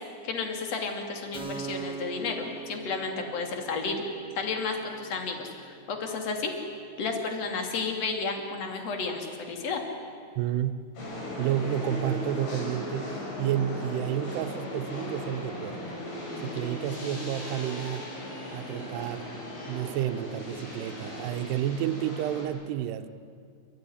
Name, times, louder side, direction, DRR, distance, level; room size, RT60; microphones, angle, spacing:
voice 1, 0.2-4.0 4.4-5.5 5.9-6.5 7.0-9.8, left 4 dB, 40° left, 3 dB, 3.2 m, -32 dB
Keyboard (musical), 1.3-8.6, right 4 dB, 10° right, 3.7 m, -44 dB
voice 2, 10.4-10.8 11.4-15.8 16.4-18.1 18.5-19.3 19.7-23.1, right 11 dB, 75° right, 8 dB, 2.7 m, -30 dB
sound 1, 11.0-22.5, left 1 dB, 75° left, 8.0 m, -37 dB
29.0 x 15.5 x 10.0 m, 2.2 s
omnidirectional pair, 5.5 m